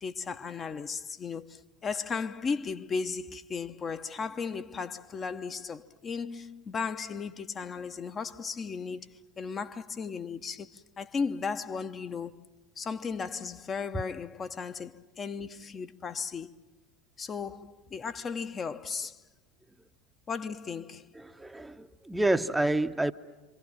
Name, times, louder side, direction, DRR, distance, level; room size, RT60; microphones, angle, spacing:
voice 1, 0.0-12.4 12.8-16.5 17.2-19.2 20.3-21.1, left 5 dB, 25° left, 0.8 m, -35 dB
voice 2, 21.2-23.1, right 2 dB, 5° right, 0.8 m, -28 dB
26.5 x 25.5 x 7.4 m
figure-of-eight pair, 75°, 0 cm